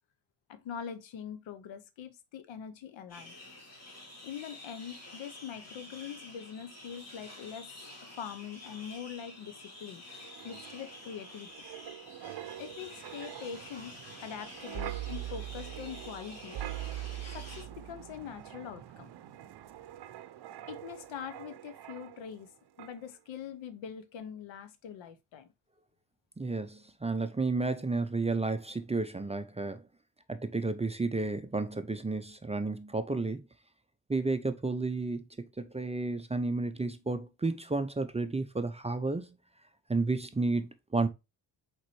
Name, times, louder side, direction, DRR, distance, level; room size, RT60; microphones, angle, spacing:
voice 1, 0.5-3.4 4.2-7.7 8.0-10.0 10.4-11.5 12.6-16.6 17.3-19.1 20.7-22.5 22.8-25.5, left 8 dB, 80° left, 0.8 m, -43 dB
sound 1, 3.1-17.6, left 1 dB, 35° left, 2.2 m, -49 dB
Wind, 10.1-22.5 22.8-23.0, right 13 dB, 60° right, 0.6 m, -43 dB
voice 2, 26.4-29.8 30.3-33.4 34.1-39.4 39.9-41.1, right 3 dB, 15° right, 0.4 m, -32 dB
4.5 x 3.9 x 3.0 m
cardioid pair, 70°, 45 cm